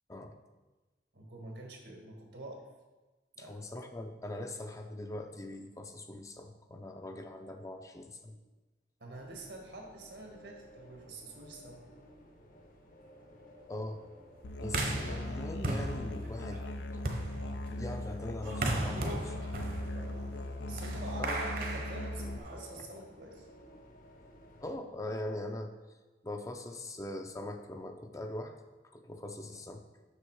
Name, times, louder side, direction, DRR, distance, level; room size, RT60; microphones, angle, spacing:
voice 1, 1.1-2.7 3.4-3.7 9.0-11.8 20.0-23.5, right 2 dB, 80° right, 1 dB, 1.7 m, -47 dB
voice 2, 3.4-8.4 13.7-14.0 14.6-16.7 17.8-19.4 21.2-21.4 24.6-25.7 26.2-28.6 28.9-29.8, left 1 dB, 20° left, 5 dB, 0.5 m, -41 dB
sound 1, 9.1-24.8, equal, 50° left, 1.0 m, -56 dB
Musical instrument, 14.4-22.4, left 1 dB, 85° left, 0.6 m, -39 dB
sound 2, 14.7-22.8, right 2 dB, 55° right, 1.0 m, -37 dB
6.6 x 6.3 x 4.7 m, 1.2 s
head